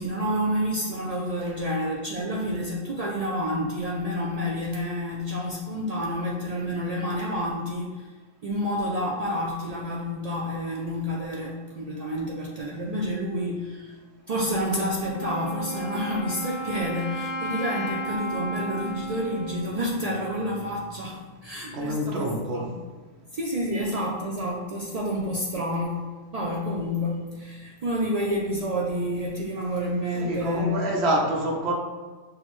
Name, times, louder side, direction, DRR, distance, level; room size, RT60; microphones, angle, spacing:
voice 1, 0.0-8.1 8.4-13.9 14.3-22.3 22.5-22.8 23.3-26.0 26.3-30.8, equal, 80° right, -4 dB, 0.3 m, -29 dB
Wind instrument woodwind instrument, 15.1-20.8, right 1 dB, 40° left, 0.6 m, -34 dB
voice 2, 21.7-22.6 30.1-31.7, right 1 dB, 65° right, -1 dB, 1.0 m, -26 dB
6.0 x 2.0 x 3.0 m, 1.3 s
omnidirectional pair, 1.2 m